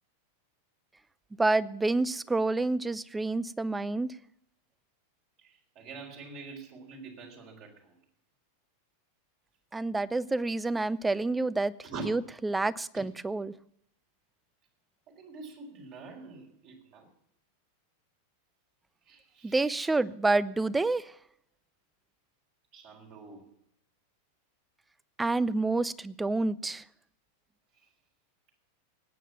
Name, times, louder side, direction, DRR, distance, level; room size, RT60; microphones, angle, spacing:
voice 1, 1.4-4.1 9.7-11.7 12.1-13.5 19.4-21.1 25.2-26.8, right 2 dB, 10° right, 0.6 m, -28 dB
voice 2, 5.4-7.9 11.8-12.0 15.1-17.1 19.1-19.9 22.7-23.5, right 4 dB, 40° right, 4.2 m, -45 dB
19.0 x 9.2 x 7.1 m
figure-of-eight pair, 90°, 0 cm